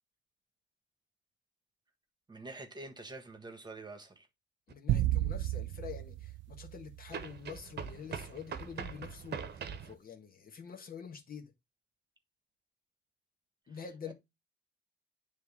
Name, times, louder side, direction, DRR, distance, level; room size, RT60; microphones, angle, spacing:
voice 1, 2.3-4.3 14.1-14.2, right 2 dB, 20° right, 1.4 m, -46 dB
voice 2, 4.7-11.5 13.7-14.1, left 7 dB, 45° left, 1.5 m, -47 dB
sound 1, 4.7-4.8 7.1-9.9, right 7 dB, 55° right, 1.0 m, -42 dB
sound 2, 4.9-7.4, right 14 dB, 70° right, 0.4 m, -33 dB
9.3 x 3.3 x 3.5 m
cardioid pair, 90°, 20 cm